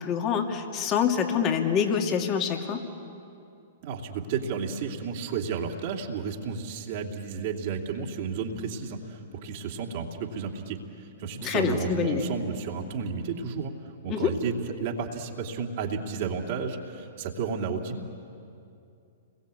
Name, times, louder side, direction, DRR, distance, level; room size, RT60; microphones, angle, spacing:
voice 1, 0.0-2.8 11.4-12.2 14.1-14.3, left 7 dB, 35° left, 4 dB, 2.7 m, -26 dB
voice 2, 3.8-18.1, right 5 dB, 50° right, 1 dB, 2.9 m, -32 dB
29.5 x 21.5 x 8.5 m, 2.5 s
hypercardioid pair, 120°, 0 cm